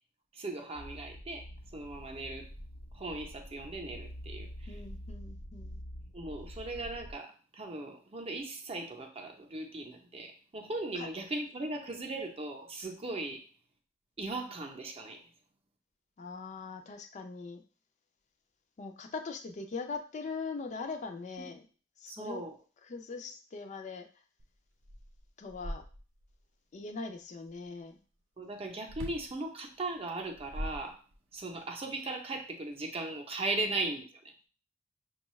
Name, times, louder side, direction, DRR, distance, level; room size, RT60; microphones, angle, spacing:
voice 1, 0.3-1.4 1.7-2.5 2.9-4.8 6.1-13.4 14.2-15.2 22.1-22.5 28.4-31.0 31.3-34.0, right 2 dB, 30° right, 3 dB, 0.6 m, -38 dB
sound 1, 0.7-7.1, equal, 80° left, 0.8 m, -46 dB
voice 2, 4.7-5.8 10.9-11.1 16.2-17.6 18.8-21.6 22.0-22.4 22.9-24.1 25.4-25.8 26.7-28.0 33.6-33.7, left 4 dB, 40° left, 5 dB, 0.4 m, -41 dB
sound 2, 24.4-24.5 24.8-26.3 28.9-29.3 30.2-31.4, equal, 85° right, 0.7 m, -41 dB
5.3 x 2.3 x 3.0 m, 0.37 s
head